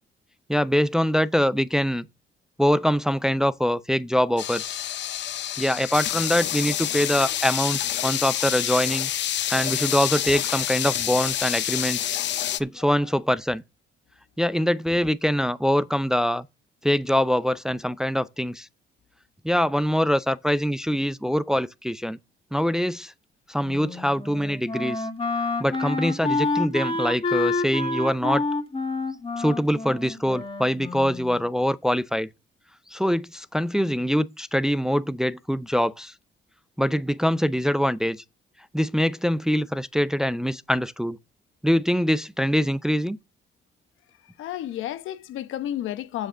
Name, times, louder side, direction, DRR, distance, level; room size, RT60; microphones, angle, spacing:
voice 1, 0.5-2.0 2.6-4.8 5.6-9.1 9.5-12.1 12.6-13.6 14.4-16.5 16.8-18.7 19.4-22.2 22.5-23.1 23.5-25.1 25.6-28.4 29.4-32.3 32.9-36.1 36.8-38.2 38.7-41.2 41.6-43.2, equal, 5° right, 0.5 m, -24 dB
sound 1, 4.4-12.6, left 11 dB, 65° left, 0.7 m, -28 dB
voice 2, 12.8-13.1 44.2-46.3, left 12 dB, 85° left, 1.0 m, -32 dB
Wind instrument woodwind instrument, 23.6-31.4, left 3 dB, 25° left, 1.7 m, -28 dB
7.7 x 5.1 x 6.6 m
cardioid pair, 90°, 20 cm